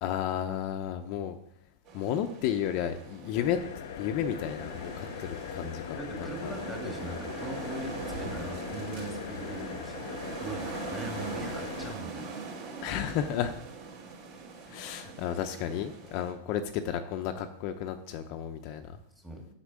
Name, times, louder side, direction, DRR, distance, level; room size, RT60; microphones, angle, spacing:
voice 1, 0.0-1.4 1.9-3.6 4.0-6.3 12.8-13.5 14.7-19.0, left 9 dB, 45° left, 6 dB, 0.7 m, -32 dB
sound 1, 1.9-16.3, right 4 dB, 40° right, 3.1 m, -42 dB
sound 2, 3.3-12.0, left 12 dB, 70° left, 0.4 m, -41 dB
voice 2, 5.5-12.3 19.2-19.5, right 2 dB, 5° right, 2 dB, 1.9 m, -41 dB
8.2 x 6.0 x 7.5 m, 0.76 s
supercardioid pair, 150°, 0 cm